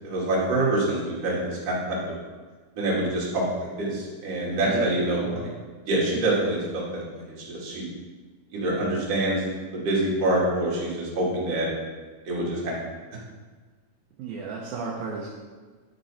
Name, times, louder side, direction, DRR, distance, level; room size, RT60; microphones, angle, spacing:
voice 1, 0.0-2.0 2.8-5.5 5.8-7.9 8.5-11.7 12.2-12.8, right 1 dB, 45° right, -6 dB, 3.0 m, -26 dB
voice 2, 14.2-15.3, right 4 dB, 75° right, -3 dB, 2.5 m, -33 dB
10.5 x 6.1 x 4.2 m, 1.4 s
omnidirectional pair, 4.5 m